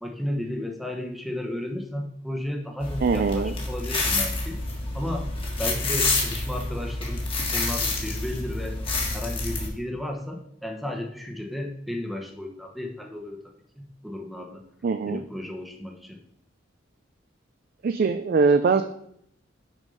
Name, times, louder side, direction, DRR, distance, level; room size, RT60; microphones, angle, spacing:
voice 1, 0.0-4.6 4.9-5.3 5.6-7.2 7.5-8.8 9.1-13.4 13.8-14.6 15.0-16.2, left 1 dB, ahead, 2 dB, 0.9 m, -33 dB
sound 1, 2.8-9.7, left 3 dB, 30° left, 1.5 m, -28 dB
voice 2, 3.0-3.5 14.8-15.2 17.8-18.8, right 4 dB, 50° right, 9 dB, 0.4 m, -22 dB
6.3 x 5.2 x 5.4 m, 0.72 s
head